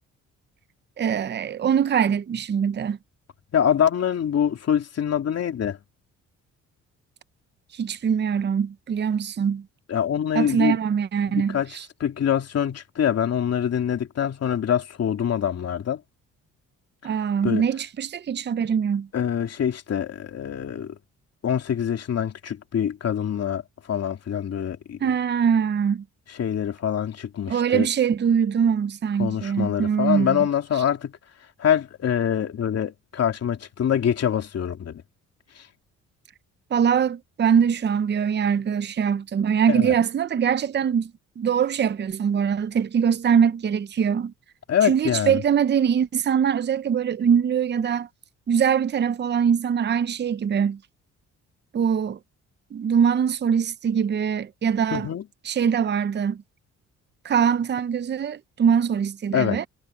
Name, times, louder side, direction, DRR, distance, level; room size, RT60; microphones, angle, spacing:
voice 1, 1.0-3.0 7.7-9.6 10.3-11.8 17.0-19.1 25.0-26.0 27.5-30.5 36.7-41.1 41.4-44.3 44.8-48.1 48.5-50.8 51.7-52.2 52.7-55.1 55.4-56.4 57.2-59.7, right 7 dB, 35° right, 0.7 m, -22 dB
voice 2, 3.5-5.8 9.9-10.8 11.3-16.0 17.0-17.1 17.4-17.6 19.1-21.0 21.4-23.6 23.9-25.0 26.3-27.9 29.2-31.1 31.6-35.0 35.6-35.7 39.7-40.0 44.7-45.4 54.9-55.2 59.3-59.6, left 9 dB, 55° left, 2.9 m, -25 dB
cardioid pair, 90°, 30 cm